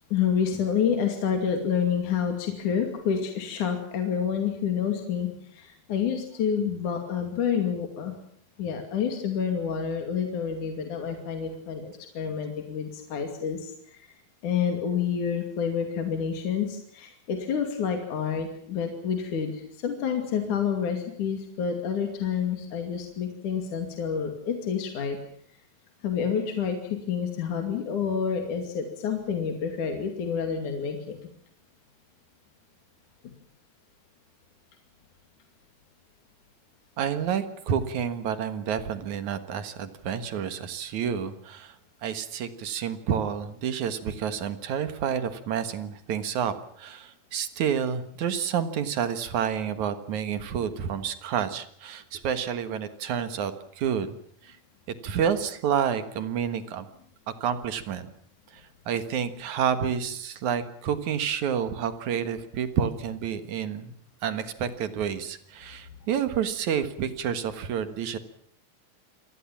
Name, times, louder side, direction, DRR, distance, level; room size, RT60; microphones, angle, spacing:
voice 1, 0.1-8.1 8.6-14.1 14.4-25.2 26.0-31.3, left 7 dB, 55° left, 5 dB, 3.8 m, -28 dB
voice 2, 37.0-41.8 42.0-54.2 54.4-54.6 55.0-56.9 57.3-58.1 58.5-63.9 64.2-68.2, right 8 dB, 60° right, 10 dB, 2.6 m, -29 dB
27.0 x 19.0 x 7.3 m, 0.63 s
omnidirectional pair, 4.3 m